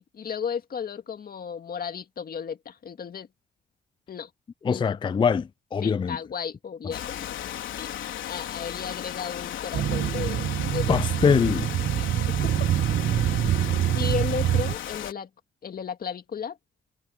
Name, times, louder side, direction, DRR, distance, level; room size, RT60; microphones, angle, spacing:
voice 1, 0.0-3.3 4.1-4.3 4.7-4.8 5.8-7.3 7.8-7.9 8.3-11.0 11.9-12.1 12.4-12.7 13.9-15.3 15.6-16.6, left 7 dB, 50° left, 2.0 m, -34 dB
voice 2, 4.6-6.2 10.9-11.7, left 6 dB, 25° left, 0.4 m, -23 dB
Rain, 6.9-15.1, left 11 dB, 80° left, 4.1 m, -35 dB
sound 1, 9.7-14.8, right 11 dB, 55° right, 0.5 m, -25 dB
cardioid pair, 90°, 20 cm